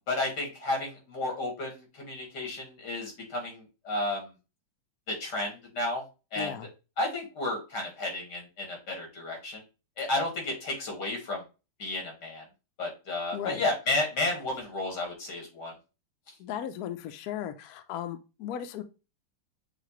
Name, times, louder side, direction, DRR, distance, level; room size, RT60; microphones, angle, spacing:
voice 1, 0.1-4.3 5.1-6.0 6.3-6.5 7.0-9.6 10.0-11.4 11.8-12.4 12.8-15.7, left 2 dB, 55° left, 0 dB, 2.5 m, -32 dB
voice 2, 6.4-6.7 10.0-10.1 13.3-13.6 16.4-18.8, left 10 dB, 80° left, 9 dB, 0.8 m, -36 dB
6.6 x 2.5 x 3.0 m, 0.29 s
omnidirectional pair, 2.2 m